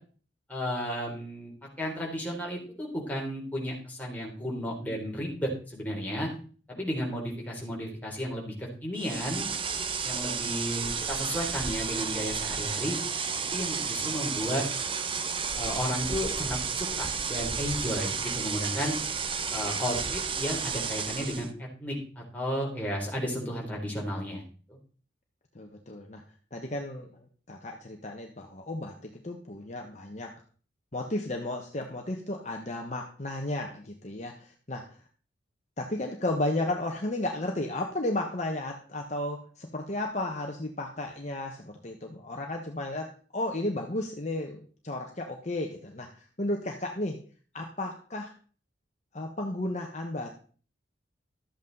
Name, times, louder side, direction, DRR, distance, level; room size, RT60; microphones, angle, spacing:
voice 1, 0.5-1.5 1.8-6.3 6.7-9.5 10.0-13.0 13.5-14.6 15.6-19.0 19.5-24.4 24.7-24.8, equal, 10° left, -2 dB, 3.4 m, -33 dB
sound 1, 9.0-21.5, right 6 dB, 30° right, 0.8 m, -32 dB
voice 2, 25.5-26.2 26.5-30.3 30.9-35.0 35.8-47.2 47.5-48.3 49.1-50.3, left 1 dB, 40° left, 2 dB, 1.2 m, -34 dB
13.0 x 8.3 x 4.0 m, 0.41 s
head